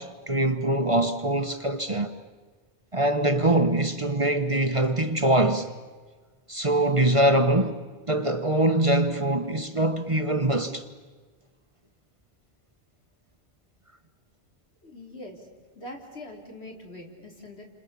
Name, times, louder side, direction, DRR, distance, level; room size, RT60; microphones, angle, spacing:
voice 1, 0.0-2.1 2.9-5.7 6.5-7.8 8.1-10.8, right 1 dB, 30° right, 1.2 m, -23 dB
voice 2, 14.8-15.5 15.7-17.6, left 1 dB, 75° left, 4.4 m, -42 dB
29.5 x 26.5 x 7.1 m
omnidirectional pair, 1.1 m